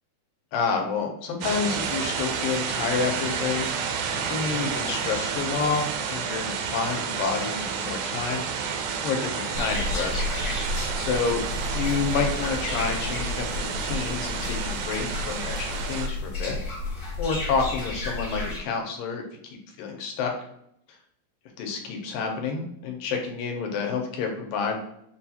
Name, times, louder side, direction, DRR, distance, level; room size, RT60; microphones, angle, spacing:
voice 1, 0.5-3.7 4.3-8.7 9.0-10.2 11.0-11.4 11.7-16.6 17.2-19.2 19.8-20.3 21.6-24.8, left 5 dB, 80° left, 2 dB, 2.4 m, -29 dB
sound 1, 1.4-16.1, right 6 dB, 80° right, 1.8 m, -30 dB
sound 2, 9.5-18.6, left 2 dB, 40° left, 1.2 m, -32 dB
6.5 x 2.3 x 2.8 m, 0.73 s
omnidirectional pair, 4.0 m